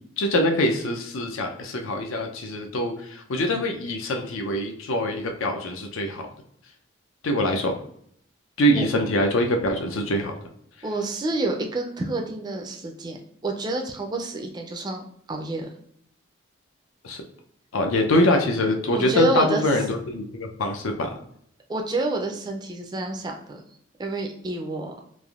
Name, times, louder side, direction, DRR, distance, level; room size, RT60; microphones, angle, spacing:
voice 1, 0.2-6.3 7.2-7.7 8.6-10.3 17.0-17.2 17.7-21.1, left 1 dB, 80° left, 3 dB, 0.5 m, -24 dB
voice 2, 10.8-13.2 13.4-15.0 15.3-15.7 18.9-19.6 21.7-23.6 24.0-24.9, right 2 dB, 20° right, 2 dB, 0.3 m, -28 dB
3.3 x 2.5 x 2.3 m, 0.67 s
head